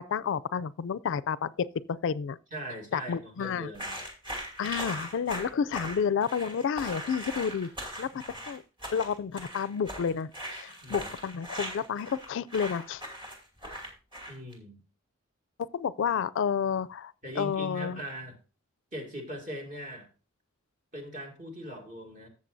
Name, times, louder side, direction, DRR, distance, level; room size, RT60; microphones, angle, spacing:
voice 1, 0.0-2.4 2.9-3.7 4.6-7.7 8.0-8.6 8.9-13.0 15.7-18.0, left 7 dB, 65° left, 0.4 m, -30 dB
voice 2, 2.5-4.0 8.1-8.2 10.8-11.1 14.3-14.8 17.2-18.3 18.9-20.1 20.9-22.3, equal, 40° right, 2.4 m, -40 dB
sound 1, 3.7-14.5, equal, 25° right, 2.5 m, -39 dB
13.5 x 7.5 x 2.6 m
head